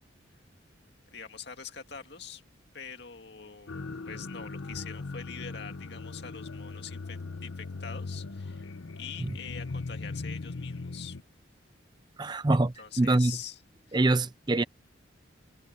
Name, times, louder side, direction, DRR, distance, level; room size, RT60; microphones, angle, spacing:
voice 1, 1.1-2.4 2.7-8.7 9.0-11.2 12.8-13.6 13.9-14.0, left 7 dB, 55° left, 2.3 m, -44 dB
sound 1, 3.7-11.2, left 3 dB, 85° left, 0.9 m, -39 dB
voice 2, 12.2-13.4 13.9-14.6, right 2 dB, 20° right, 0.5 m, -25 dB
head